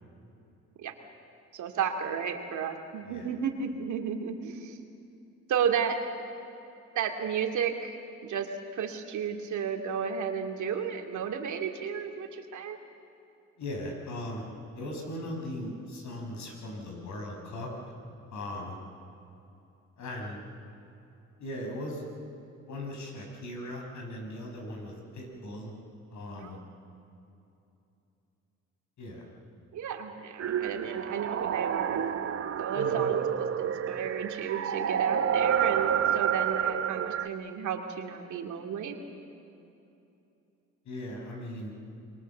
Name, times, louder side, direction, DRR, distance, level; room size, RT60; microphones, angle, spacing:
voice 1, 1.5-4.8 5.5-6.0 6.4-6.6 6.9-8.0 8.2-12.8 26.4-26.6 29.7-32.0 32.6-33.3 33.6-39.0, right 7 dB, 75° right, 4 dB, 2.5 m, -33 dB
voice 2, 13.6-14.4 14.7-18.0 18.3-18.8 20.0-20.4 21.4-22.0 22.7-25.7 26.1-26.6 29.0-29.2 32.7-33.1 40.9-41.7, left 1 dB, 70° left, 1 dB, 5.9 m, -38 dB
sound 1, 30.4-37.3, right 9 dB, 50° right, 0.9 m, -29 dB
27.0 x 22.5 x 7.3 m, 2.8 s
cardioid pair, 90°, 30 cm